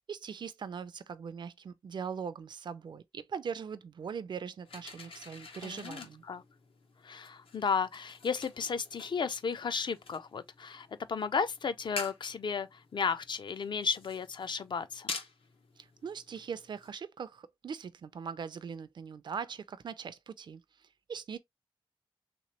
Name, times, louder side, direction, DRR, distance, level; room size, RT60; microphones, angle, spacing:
voice 1, 0.1-6.2 15.8-21.4, right 6 dB, 55° right, 0.3 m, -41 dB
sound 1, 4.7-16.9, left 4 dB, 80° left, 0.8 m, -48 dB
voice 2, 5.6-6.4 7.0-15.1, left 5 dB, 55° left, 0.4 m, -34 dB
3.2 x 3.0 x 2.9 m
wide cardioid pair, 150°, 9 cm